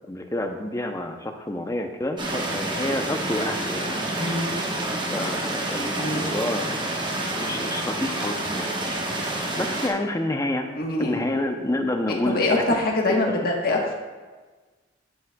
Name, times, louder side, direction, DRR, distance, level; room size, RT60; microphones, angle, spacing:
voice 1, 0.1-4.0 5.1-7.1 7.3-8.7 9.3-10.7 11.0-12.8, left 1 dB, 15° left, 5 dB, 0.6 m, -29 dB
sound 1, 2.2-9.9, right 1 dB, 25° right, 1.0 m, -28 dB
voice 2, 4.2-4.5 5.9-6.3 10.8-11.2 12.3-13.9, left 2 dB, 50° left, 0 dB, 1.2 m, -24 dB
15.0 x 6.0 x 2.3 m, 1.3 s
head